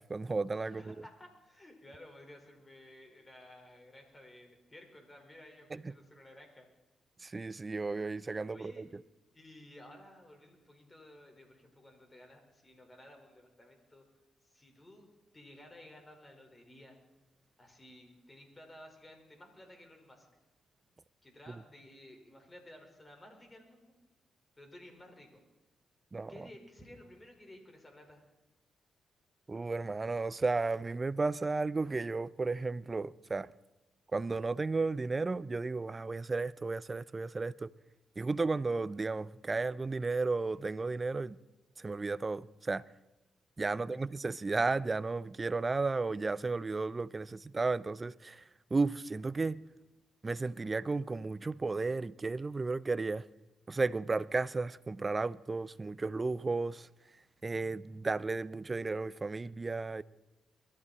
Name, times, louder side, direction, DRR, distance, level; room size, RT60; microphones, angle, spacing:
voice 1, 0.0-0.9 5.7-5.9 7.2-9.0 26.1-26.5 29.5-33.5 34.1-37.7 38.2-41.4 41.8-42.8 43.6-49.6 50.2-53.2 53.7-56.9 57.4-60.0, right 3 dB, 30° right, 0.5 m, -33 dB
voice 2, 0.6-6.7 8.5-8.8 9.3-14.0 14.4-15.1 15.3-17.0 17.6-20.3 21.2-23.9 24.6-25.4 26.3-28.3 43.7-44.0, left 1 dB, 25° left, 4.7 m, -55 dB
22.0 x 13.5 x 4.2 m
supercardioid pair, 65°, 0 cm